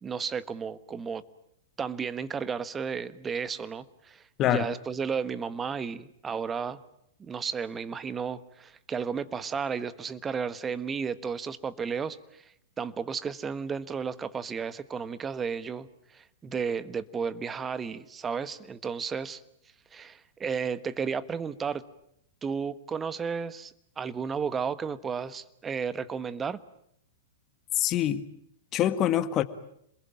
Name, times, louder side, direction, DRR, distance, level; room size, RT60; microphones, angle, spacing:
voice 1, 0.0-1.2 1.8-6.8 7.2-19.4 19.9-21.8 22.4-26.6, right 6 dB, 20° right, 1.3 m, -33 dB
voice 2, 27.8-28.3 28.7-29.4, left 11 dB, 35° left, 1.7 m, -25 dB
27.5 x 21.5 x 8.9 m
hypercardioid pair, 115°, 0 cm